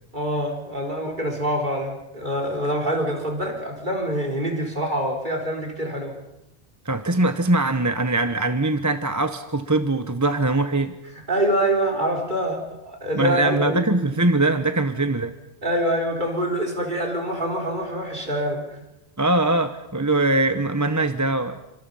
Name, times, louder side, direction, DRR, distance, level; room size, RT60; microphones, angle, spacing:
voice 1, 0.1-6.2 11.3-13.9 15.6-18.8, right 1 dB, 50° right, 0 dB, 4.5 m, -25 dB
voice 2, 6.8-10.9 13.1-15.3 19.2-21.6, right 2 dB, 20° right, 9 dB, 1.0 m, -22 dB
29.0 x 25.5 x 5.6 m, 0.90 s
omnidirectional pair, 1.0 m